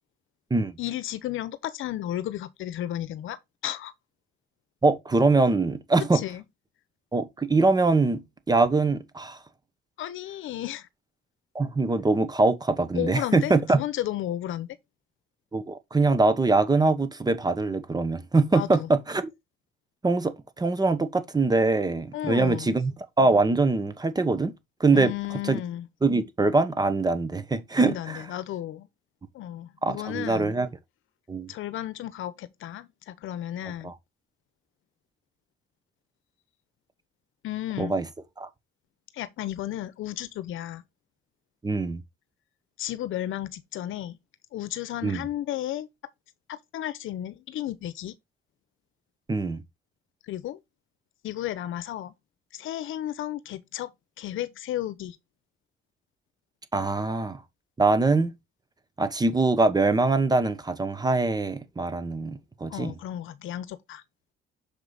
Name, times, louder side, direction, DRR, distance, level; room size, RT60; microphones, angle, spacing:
voice 1, 0.8-3.4 3.6-3.9 6.1-6.4 10.0-10.9 12.9-14.7 18.5-18.9 22.1-22.8 24.9-25.9 27.8-28.9 29.3-30.5 31.5-33.9 37.4-38.0 39.1-40.8 42.8-44.2 44.5-45.9 46.5-48.2 50.3-50.6 51.2-52.1 52.5-53.9 54.2-55.2 62.7-64.0, left 13 dB, 75° left, 0.8 m, -33 dB
voice 2, 4.8-6.2 7.1-9.4 11.5-13.8 15.5-19.3 20.0-24.5 24.8-25.1 25.4-25.6 26.0-28.2 29.8-30.7 31.3-31.5 33.8-33.9 37.8-38.1 38.4-38.5 41.6-42.0 45.0-45.2 49.3-49.6 56.7-57.4 57.8-58.3 59.0-62.9, right 3 dB, 20° right, 1.1 m, -23 dB
6.7 x 4.8 x 3.9 m
cardioid pair, 105°, 21 cm